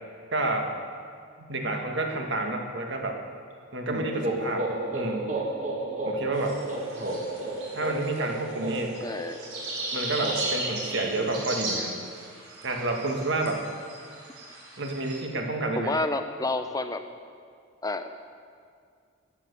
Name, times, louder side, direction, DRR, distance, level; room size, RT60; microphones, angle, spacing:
voice 1, 0.3-0.7 1.5-3.2 3.7-4.7 4.9-5.3 6.0-6.6 6.9-7.2 7.7-9.0 9.9-12.0 12.6-13.6 14.8-15.9, right 2 dB, 55° right, 3 dB, 1.5 m, -29 dB
sound 1, 3.9-11.6, right 1 dB, 35° right, 1.8 m, -33 dB
sound 2, 6.3-15.2, right 2 dB, 90° right, 4.2 m, -37 dB
voice 2, 6.5-6.8 9.0-9.4 15.8-17.0 17.8-18.1, left 2 dB, 15° left, 9 dB, 0.6 m, -30 dB
14.5 x 9.8 x 6.9 m, 2.2 s
head